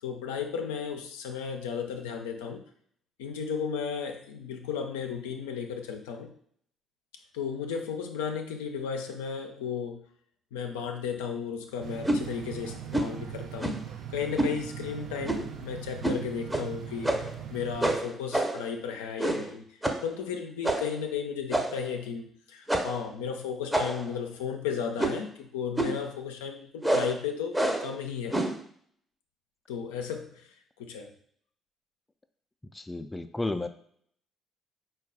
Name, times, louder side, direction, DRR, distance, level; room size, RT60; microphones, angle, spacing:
voice 1, 0.0-2.6 3.2-6.3 7.3-10.0 10.5-13.8 14.1-17.2 17.5-28.4 29.7-31.1, left 7 dB, 80° left, 4 dB, 0.4 m, -34 dB
sound 1, 11.8-18.0, right 9 dB, 65° right, 0.5 m, -41 dB
sound 2, 12.0-12.2 12.9-13.2 13.6-13.9 14.4-14.6 15.2-15.5 16.0-16.2 16.5-16.6 17.0-17.4 17.8-18.7 19.2-19.5 19.8-20.1 20.6-21.0 21.5-21.9 22.7-23.0 23.7-24.1 25.0-25.3 25.8-26.0 26.8-27.2 27.5-27.9 28.3-28.6, right 1 dB, 10° right, 0.7 m, -28 dB
voice 2, 32.7-33.7, left 2 dB, 15° left, 8 dB, 0.4 m, -32 dB
4.4 x 2.3 x 3.7 m, 0.62 s
hypercardioid pair, 50°, 0 cm